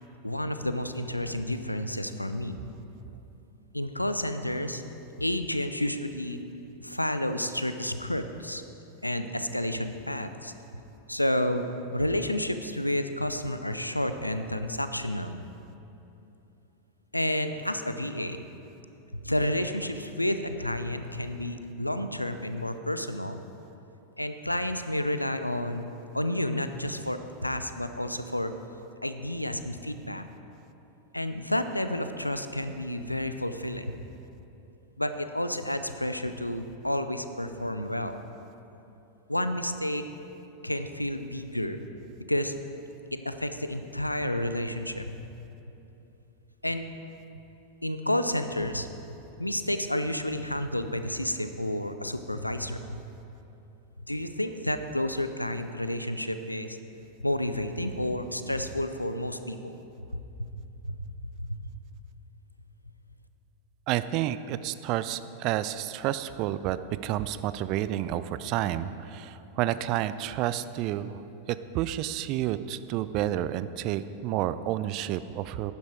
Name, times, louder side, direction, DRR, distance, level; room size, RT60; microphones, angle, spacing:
voice 1, 0.2-2.6 3.7-4.8 5.2-6.4 6.8-8.6 9.0-10.5 11.1-11.7 11.9-15.4 17.1-18.4 19.1-23.4 24.2-28.5 29.0-30.2 31.1-34.0 35.0-38.2 39.3-40.0 40.6-41.8 42.3-42.5 43.1-45.2 46.6-46.9 47.8-48.9 49.4-53.0 54.1-56.8 57.2-59.8 60.1-60.5 60.8-61.0 61.4-61.7, left 1 dB, 85° left, 9 dB, 0.5 m, -30 dB
voice 2, 63.9-66.8 67.0-71.2 71.5-75.7, right 13 dB, 40° right, 14 dB, 0.4 m, -30 dB
11.5 x 9.5 x 4.6 m, 2.9 s
figure-of-eight pair, 90°, 0 cm